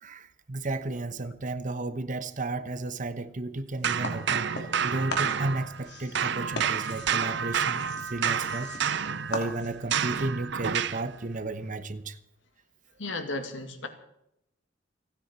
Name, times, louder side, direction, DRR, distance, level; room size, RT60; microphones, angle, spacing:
voice 1, 0.0-9.0 9.3-12.2, right 2 dB, 45° right, 1.1 m, -33 dB
sound 1, 3.8-5.9 6.1-11.1, right 7 dB, 65° right, 0.7 m, -29 dB
sound 2, 4.0-4.8 5.1-10.0, left 2 dB, 65° left, 3.1 m, -39 dB
voice 2, 13.0-13.9, left 2 dB, 90° left, 2.1 m, -34 dB
29.0 x 9.8 x 4.4 m
head